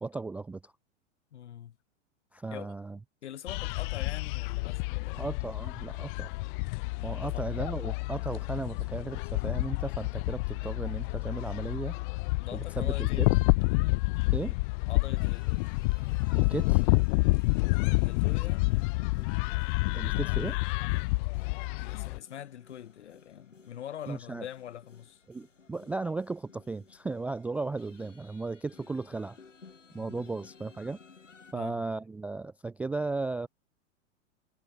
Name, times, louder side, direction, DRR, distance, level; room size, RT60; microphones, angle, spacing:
voice 1, 0.0-0.7 2.3-3.0 5.2-6.3 7.0-12.0 12.5-13.3 14.3-14.6 16.4-16.8 19.9-20.6 24.1-24.5 25.3-29.4 29.9-31.0 31.5-33.5, right 3 dB, 5° right, 0.3 m, -36 dB
voice 2, 1.3-1.7 2.5-2.7 3.2-5.2 7.2-7.5 12.4-13.4 14.9-15.5 17.9-18.7 21.8-25.2 30.0-30.3 31.5-31.8, left 10 dB, 65° left, 6.2 m, -44 dB
sound 1, 3.5-22.2, left 26 dB, 45° left, 1.0 m, -29 dB
sound 2, 15.2-31.5, left 5 dB, 85° left, 3.2 m, -57 dB
figure-of-eight pair, 95°, 36 cm